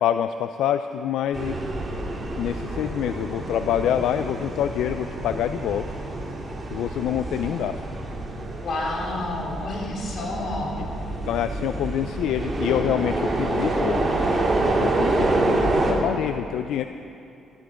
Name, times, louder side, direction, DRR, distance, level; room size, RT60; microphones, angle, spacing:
voice 1, 0.0-1.6 2.4-5.9 6.7-7.8 10.8-10.9 11.3-14.1 14.8-16.9, left 10 dB, 85° left, 10 dB, 0.4 m, -26 dB
sound 1, 1.3-15.9, right 2 dB, 30° right, 2.3 m, -27 dB
voice 2, 8.6-10.7, left 2 dB, 55° left, -2 dB, 3.6 m, -29 dB
13.0 x 12.5 x 5.1 m, 2.6 s
cardioid pair, 90°, 0 cm